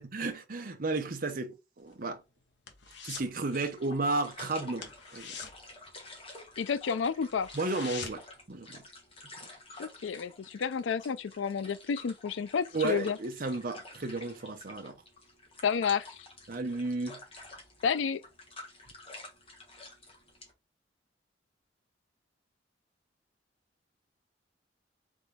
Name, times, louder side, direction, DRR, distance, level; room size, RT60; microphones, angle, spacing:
voice 1, 0.0-2.2 3.0-5.4 7.5-8.2 8.5-8.8 12.7-14.9 16.5-17.2, right 3 dB, 50° right, 0.8 m, -33 dB
sound 1, 1.8-3.4 3.7-4.0 4.2-4.4 4.7-6.6 7.0-7.1 7.3-8.4 8.8-8.9, left 6 dB, 70° left, 1.0 m, -44 dB
sound 2, 3.5-20.5, left 2 dB, 30° left, 1.4 m, -50 dB
voice 2, 6.6-7.5 9.8-13.2 15.6-16.2 17.8-18.2, left 6 dB, 90° left, 0.4 m, -30 dB
3.9 x 3.7 x 3.5 m
head